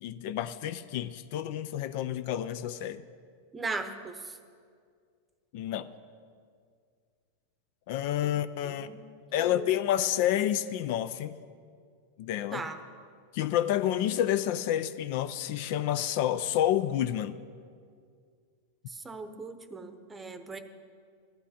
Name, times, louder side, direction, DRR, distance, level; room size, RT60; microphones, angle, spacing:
voice 1, 0.0-3.0 5.5-5.9 7.9-8.9 9.3-11.4 12.2-12.7 13.3-17.4, left 11 dB, 55° left, 12 dB, 0.4 m, -29 dB
voice 2, 3.5-4.4 8.2-8.3 8.6-9.1 9.4-9.7 12.5-12.8 18.9-20.6, right 3 dB, 15° right, 9 dB, 0.8 m, -38 dB
15.5 x 11.5 x 4.3 m, 2.1 s
supercardioid pair, 140°, 0 cm